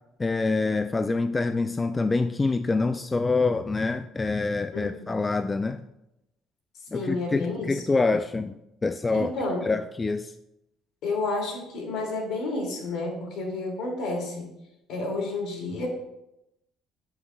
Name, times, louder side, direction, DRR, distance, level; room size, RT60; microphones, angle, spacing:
voice 1, 0.2-5.8 6.9-9.3 9.6-10.3, left 3 dB, 20° left, 10 dB, 0.3 m, -26 dB
voice 2, 4.7-5.3 6.9-7.8 9.1-9.6 11.0-14.5 14.9-15.9, left 2 dB, 70° left, 0 dB, 2.5 m, -30 dB
11.5 x 5.5 x 2.3 m, 0.87 s
supercardioid pair, 90°, 0 cm